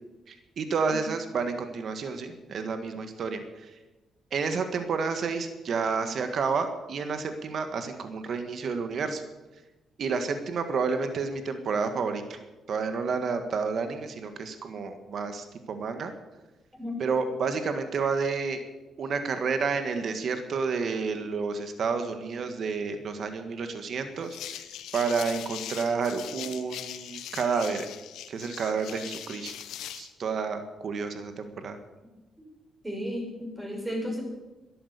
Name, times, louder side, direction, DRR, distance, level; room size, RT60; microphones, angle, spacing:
voice 1, 0.3-3.7 4.3-9.2 10.0-12.4 12.7-16.1 17.0-18.6 19.0-24.4 24.9-27.9 28.3-29.5 29.9-31.8, right 5 dB, 55° right, 8 dB, 1.7 m, -30 dB
sound 1, 24.2-30.1, left 11 dB, 85° left, 1.1 m, -41 dB
voice 2, 32.8-34.2, equal, 15° right, 0 dB, 6.1 m, -33 dB
13.0 x 11.0 x 8.3 m, 1.1 s
cardioid pair, 90°, 0 cm